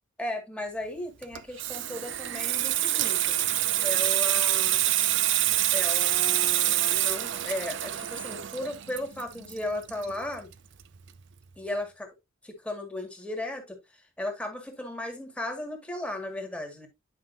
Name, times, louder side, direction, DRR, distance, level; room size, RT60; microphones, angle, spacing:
voice 1, 0.2-3.3 3.8-4.8 5.7-10.5 11.6-12.1 12.4-13.8 14.2-16.9, left 1 dB, 5° left, 1.8 m, -35 dB
Water tap faucet / Sink (filling or washing), 1.2-10.5 10.8-11.1, right 13 dB, 60° right, 0.5 m, -26 dB
9.7 x 5.4 x 2.6 m
head